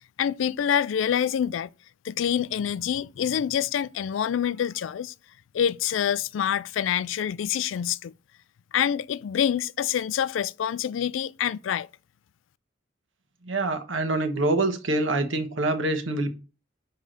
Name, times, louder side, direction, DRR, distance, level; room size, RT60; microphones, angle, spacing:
voice 1, 0.2-1.7 2.0-5.1 5.5-8.1 8.7-11.9, left 9 dB, 80° left, 0.3 m, -26 dB
voice 2, 13.5-16.3, right 2 dB, 80° right, 1.3 m, -25 dB
5.5 x 4.8 x 6.5 m
head